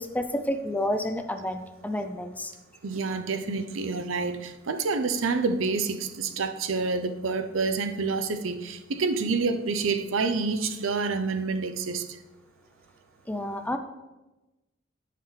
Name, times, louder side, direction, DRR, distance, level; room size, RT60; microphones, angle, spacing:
voice 1, 0.0-2.5 3.0-3.1 13.3-13.8, left 1 dB, 10° left, 7 dB, 0.4 m, -30 dB
voice 2, 2.8-12.0, right 4 dB, 75° right, 9 dB, 0.6 m, -28 dB
10.5 x 5.9 x 3.3 m, 1.1 s
head